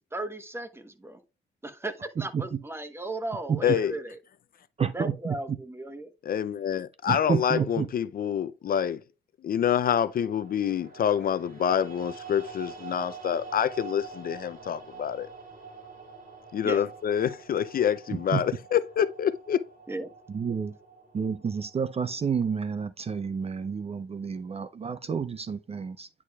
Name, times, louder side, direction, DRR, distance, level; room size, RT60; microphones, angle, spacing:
voice 1, 0.1-1.2 1.6-4.2 4.9-6.1 16.6-16.8 19.9-20.1, right 2 dB, 10° right, 1.0 m, -36 dB
voice 2, 2.2-2.6 3.5-3.8 4.8-5.6 7.1-7.9 18.1-18.4 20.3-20.8 21.1-26.1, right 6 dB, 30° right, 0.5 m, -30 dB
voice 3, 3.6-3.9 6.3-9.0 9.4-15.3 16.5-19.6, left 9 dB, 50° left, 0.5 m, -27 dB
sound 1, 10.2-22.4, right 5 dB, 45° right, 2.7 m, -46 dB
9.9 x 4.7 x 2.3 m
cardioid pair, 90°, 20 cm